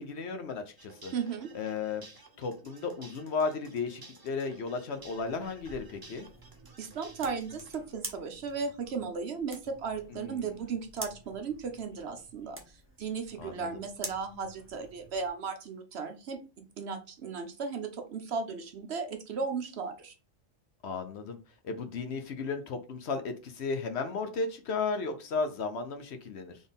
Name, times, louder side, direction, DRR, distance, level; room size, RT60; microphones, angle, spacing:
voice 1, 0.0-1.1 1.5-2.1 2.4-6.3 10.1-10.6 13.4-13.8 20.8-21.4 21.6-26.6, left 4 dB, 65° left, 7 dB, 0.8 m, -34 dB
sound 1, 0.8-7.7, right 3 dB, 30° right, 0.4 m, -55 dB
voice 2, 1.1-1.5 6.8-20.1, right 5 dB, 60° right, 7 dB, 0.9 m, -36 dB
sound 2, 4.9-15.3, right 1 dB, 10° right, 0.8 m, -48 dB
4.0 x 3.6 x 3.5 m, 0.33 s
omnidirectional pair, 1.4 m